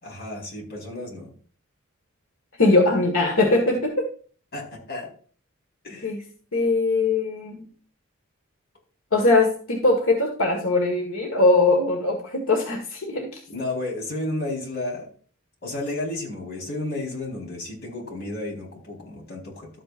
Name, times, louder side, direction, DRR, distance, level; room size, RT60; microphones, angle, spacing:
voice 1, 0.0-1.3 4.5-5.1 5.8-6.1 13.5-15.1 15.6-19.7, left 2 dB, 50° left, -1 dB, 4.5 m, -32 dB
voice 2, 2.6-4.1 6.0-6.2 6.5-7.6 9.1-13.3, left 2 dB, 75° left, 1 dB, 1.6 m, -21 dB
12.5 x 8.9 x 2.6 m, 0.43 s
head